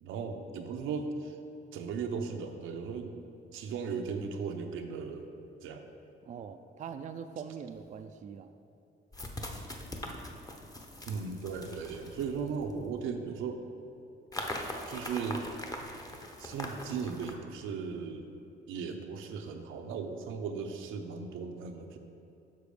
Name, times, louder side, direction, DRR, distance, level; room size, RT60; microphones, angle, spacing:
voice 1, 0.0-1.3 1.7-3.1 3.5-5.3 5.6-5.9 11.1-13.6 14.9-15.4 16.4-18.3 18.7-22.0, right 5 dB, 85° right, 5 dB, 0.7 m, -37 dB
voice 2, 6.2-8.5, right 7 dB, 40° right, 8 dB, 0.4 m, -42 dB
sound 1, 7.8-7.9 9.1-13.0 14.3-17.4, left 1 dB, 20° left, 0.8 m, -41 dB
6.8 x 6.0 x 5.0 m, 2.7 s
cardioid pair, 90°, 20 cm